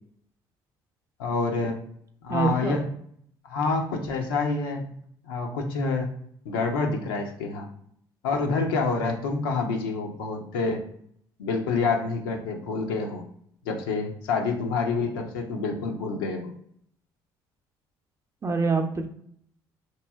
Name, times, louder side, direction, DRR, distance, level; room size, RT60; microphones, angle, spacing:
voice 1, 1.2-1.8 2.2-2.8 3.4-5.0 5.2-6.1 6.5-7.7 8.2-10.8 11.4-13.2 13.7-16.5, left 4 dB, 90° left, 2 dB, 0.4 m, -27 dB
voice 2, 2.3-2.8 18.4-19.1, right 4 dB, 25° right, 6 dB, 0.5 m, -25 dB
3.0 x 2.6 x 2.2 m, 0.66 s
hypercardioid pair, 60°, 11 cm